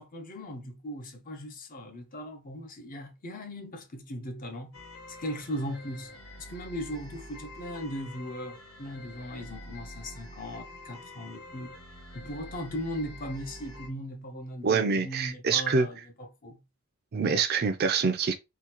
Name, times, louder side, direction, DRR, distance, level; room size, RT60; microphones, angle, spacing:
voice 1, 0.0-4.7 5.1-6.1 6.4-11.7 12.1-16.6, equal, 40° left, 0.7 m, -38 dB
sound 1, 4.7-13.9, left 1 dB, 80° left, 1.0 m, -46 dB
voice 2, 14.6-15.9 17.1-18.3, right 5 dB, 45° right, 0.5 m, -25 dB
3.8 x 2.4 x 2.9 m
head